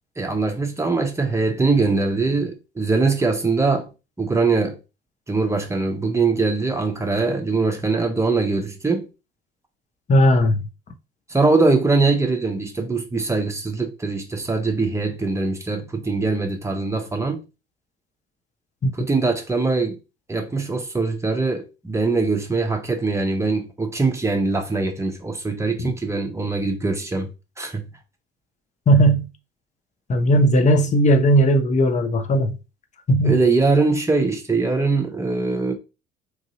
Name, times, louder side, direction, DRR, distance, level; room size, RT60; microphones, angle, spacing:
voice 1, 0.2-3.9 4.2-4.8 5.3-9.1 11.3-17.4 18.9-20.0 20.3-27.3 27.6-27.9 33.2-35.7, right 3 dB, 10° right, 0.8 m, -22 dB
voice 2, 10.1-10.6 19.0-19.1 25.8-25.9 28.9-29.3 30.1-32.5 33.1-33.4, right 1 dB, 25° left, 0.6 m, -17 dB
3.0 x 2.6 x 2.8 m
figure-of-eight pair, 50°, 29 cm